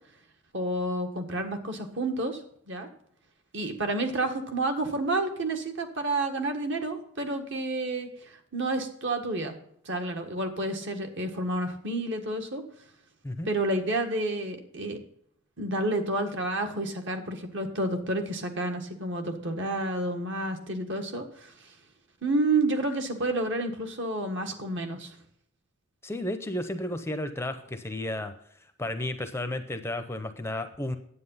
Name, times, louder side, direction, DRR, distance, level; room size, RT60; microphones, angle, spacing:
voice 1, 0.5-2.4 2.7-2.9 3.5-9.5 9.8-12.6 13.4-15.0 15.6-21.5 22.2-25.1, right 2 dB, 60° right, 5 dB, 1.6 m, -30 dB
voice 2, 26.0-28.3 28.6-31.0, left 1 dB, 10° left, 9 dB, 0.6 m, -33 dB
9.9 x 8.3 x 5.5 m, 0.69 s
head